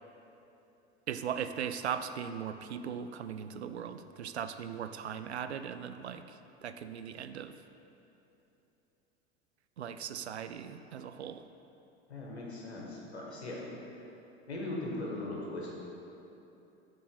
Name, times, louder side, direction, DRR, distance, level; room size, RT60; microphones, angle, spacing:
voice 1, 1.1-7.5 9.8-11.5, right 8 dB, 80° right, 10 dB, 0.5 m, -39 dB
voice 2, 12.1-13.6 14.0-14.1 14.5-15.7, left 2 dB, 80° left, -3 dB, 1.7 m, -39 dB
10.0 x 4.6 x 4.8 m, 2.9 s
figure-of-eight pair, 80°, 32 cm